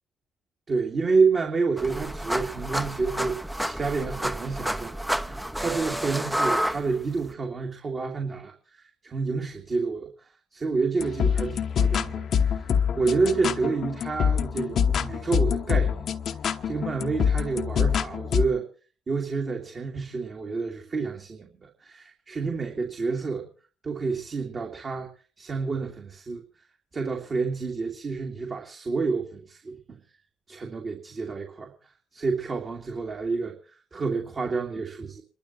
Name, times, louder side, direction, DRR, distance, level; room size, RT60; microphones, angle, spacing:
voice 1, 0.7-10.1 10.5-16.1 16.6-18.7 19.1-23.5 23.8-25.1 25.4-26.4 26.9-30.0 30.5-31.7 32.1-35.2, right 4 dB, 45° right, 2 dB, 2.6 m, -29 dB
sound 1, 1.8-7.3, equal, 5° right, 0.9 m, -30 dB
sound 2, 11.0-18.5, left 7 dB, 60° left, 1.0 m, -25 dB
28.0 x 12.5 x 3.0 m, 0.39 s
hypercardioid pair, 55°, 0 cm